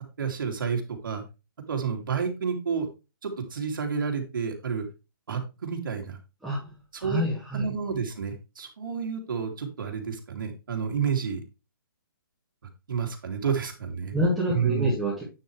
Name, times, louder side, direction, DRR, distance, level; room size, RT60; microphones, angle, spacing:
voice 1, 0.2-1.2 1.7-2.9 3.2-4.9 5.3-6.2 6.9-7.2 7.5-11.4 12.9-14.1 14.5-14.9, right 6 dB, 65° right, 2 dB, 2.9 m, -30 dB
voice 2, 7.0-7.7 14.1-15.2, equal, ahead, -9 dB, 2.7 m, -27 dB
9.5 x 6.9 x 3.3 m, 0.28 s
hypercardioid pair, 160°, 12 cm